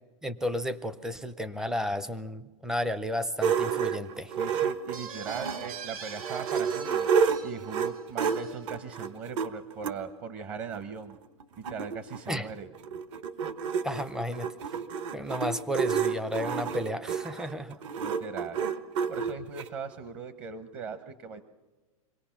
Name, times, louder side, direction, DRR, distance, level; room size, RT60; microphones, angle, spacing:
voice 1, 0.2-4.3 12.3-12.5 13.8-14.5 15.1-17.8, equal, 5° right, 14 dB, 0.5 m, -33 dB
sound 1, 3.4-5.7 6.1-10.0 10.7-10.8 11.1-11.2 11.4-19.7, right 6 dB, 60° right, 1.4 m, -30 dB
voice 2, 4.4-7.1 7.4-11.2 11.6-12.7 18.0-18.6 19.1-21.5, right 6 dB, 35° right, 11 dB, 1.0 m, -39 dB
sound 2, 4.9-9.1, right 6 dB, 85° right, 2.2 m, -43 dB
24.5 x 18.5 x 5.9 m, 1.3 s
hypercardioid pair, 145°, 18 cm